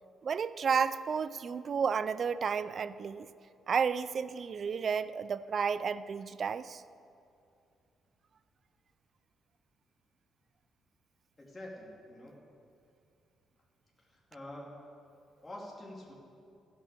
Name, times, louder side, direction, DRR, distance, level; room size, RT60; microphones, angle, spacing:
voice 1, 0.2-3.3 3.7-6.8, right 6 dB, 50° right, 15 dB, 0.4 m, -32 dB
voice 2, 11.4-12.4 14.0-14.7 15.4-16.1, left 1 dB, 20° left, -4 dB, 2.6 m, -46 dB
15.0 x 5.9 x 6.7 m, 2.5 s
cardioid pair, 90°, 0 cm